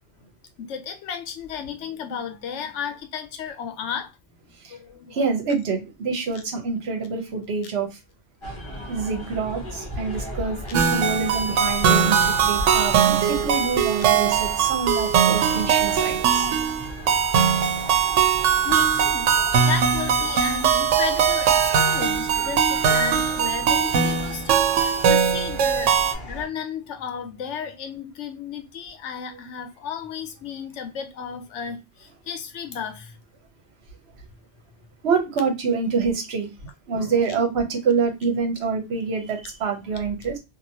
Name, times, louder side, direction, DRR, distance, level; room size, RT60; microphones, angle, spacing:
voice 1, 0.6-4.1 4.7-5.3 6.3-6.4 14.0-14.1 17.9-19.3 19.6-26.0 26.3-33.1 36.9-37.1, left 7 dB, 85° left, 1.0 m, -34 dB
voice 2, 5.1-7.9 8.9-16.5 21.5-22.0 22.4-22.5 35.0-36.5 36.9-40.4, right 5 dB, 65° right, 1.1 m, -26 dB
sound 1, 8.4-26.5, equal, 25° left, 1.0 m, -36 dB
sound 2, 10.7-26.1, right 7 dB, 90° right, 0.9 m, -20 dB
2.9 x 2.5 x 2.7 m
omnidirectional pair, 1.2 m